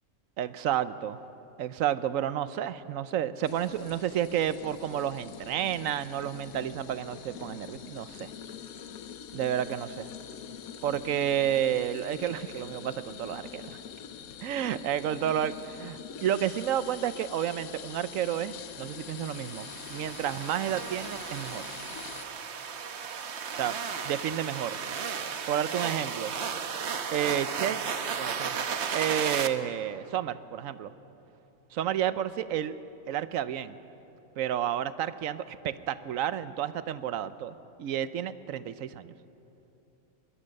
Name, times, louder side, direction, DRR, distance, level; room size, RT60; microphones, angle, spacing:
voice 1, 0.4-1.2 1.6-8.3 9.3-10.1 10.8-13.8 14.4-21.7 23.6-23.8 24.0-24.8 25.5-26.3 27.1-27.8 28.2-28.6 28.9-30.9 31.7-32.7 33.1-33.8 34.4-39.1, right 10 dB, 70° right, 15 dB, 1.0 m, -31 dB
sound 1, 3.4-22.3, left 8 dB, 85° left, 1.3 m, -44 dB
sound 2, 19.0-29.5, right 6 dB, 55° right, 1.1 m, -34 dB
21.5 x 20.0 x 6.5 m, 3.0 s
omnidirectional pair, 1.5 m